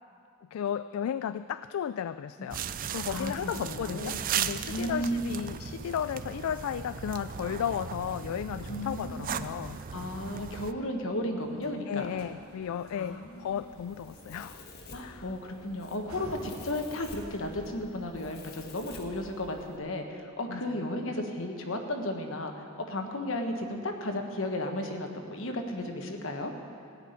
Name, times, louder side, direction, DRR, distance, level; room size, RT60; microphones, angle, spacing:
voice 1, 0.5-2.6 2.9-9.8 11.9-14.7 15.0-15.3 20.5-20.8, left 8 dB, 85° left, 13 dB, 0.3 m, -34 dB
sound 1, 2.5-10.7, right 8 dB, 40° right, 0.4 m, -37 dB
voice 2, 3.6-4.2 4.7-5.3 8.7-9.5 9.9-12.1 12.9-13.5 14.9-26.5, left 1 dB, 70° left, 4 dB, 1.4 m, -34 dB
sound 2, 8.9-19.6, right 1 dB, 80° right, 1.4 m, -53 dB
Domestic sounds home sounds, 13.5-19.8, left 3 dB, 50° left, 1.5 m, -50 dB
17.0 x 5.9 x 9.5 m, 2.4 s
head